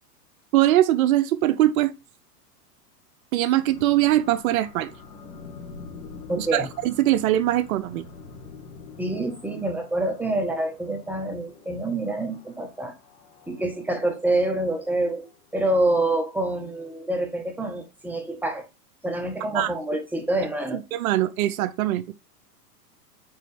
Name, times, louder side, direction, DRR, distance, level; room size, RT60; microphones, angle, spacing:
voice 1, 0.5-1.9 3.3-4.9 6.4-8.0 19.5-19.7 20.9-22.1, right 14 dB, 60° right, 0.6 m, -22 dB
sound 1, 3.7-15.6, left 4 dB, 80° left, 2.5 m, -46 dB
voice 2, 6.3-6.7 9.0-12.9 13.5-15.2 15.5-18.7 19.0-20.8, right 2 dB, 5° right, 1.3 m, -26 dB
9.0 x 4.2 x 3.4 m
hypercardioid pair, 120°, 48 cm